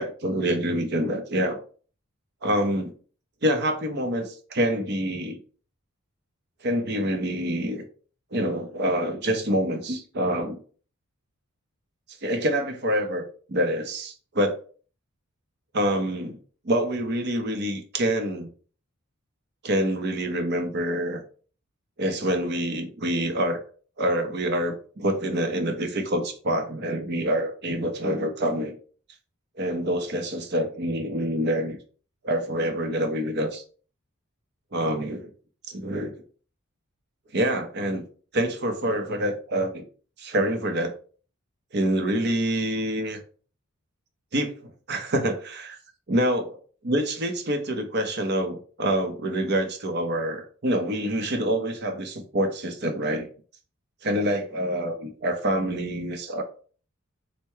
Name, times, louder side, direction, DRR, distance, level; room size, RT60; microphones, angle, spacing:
voice 1, 0.0-1.6 2.4-2.9 3.4-5.4 6.6-7.8 8.3-10.6 12.2-14.6 15.7-16.4 16.6-18.5 19.6-21.2 22.0-23.6 24.0-28.8 29.6-31.8 32.2-33.6 34.7-35.3 35.7-36.2 37.3-38.0 38.3-39.8 40.2-41.0 41.7-43.2 44.3-44.5 44.9-45.8 46.1-46.5 46.8-53.3 54.0-56.4, right 1 dB, 50° right, 6 dB, 0.7 m, -26 dB
4.5 x 2.2 x 4.6 m, 0.41 s
head